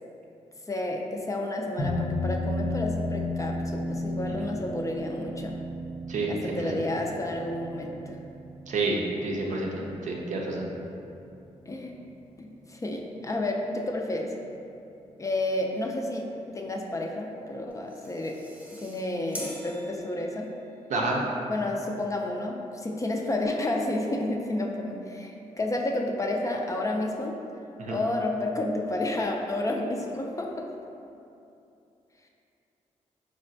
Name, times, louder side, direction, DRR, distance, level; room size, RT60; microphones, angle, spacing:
voice 1, 0.7-5.6 6.3-8.2 11.7-11.9 12.4-14.4 15.2-18.4 18.8-20.5 21.5-27.4 27.9-30.7, left 2 dB, 25° left, 1 dB, 0.3 m, -31 dB
sound 1, 1.8-12.5, left 1 dB, 80° left, 0.9 m, -34 dB
voice 2, 6.1-6.8 8.7-9.7 10.0-10.7 20.9-21.2 27.8-28.0, right 2 dB, 65° right, -2 dB, 0.5 m, -29 dB
sound 2, 17.7-20.7, left 1 dB, 10° right, 0.7 m, -44 dB
4.0 x 2.1 x 2.6 m, 2.7 s
cardioid pair, 60°, 13 cm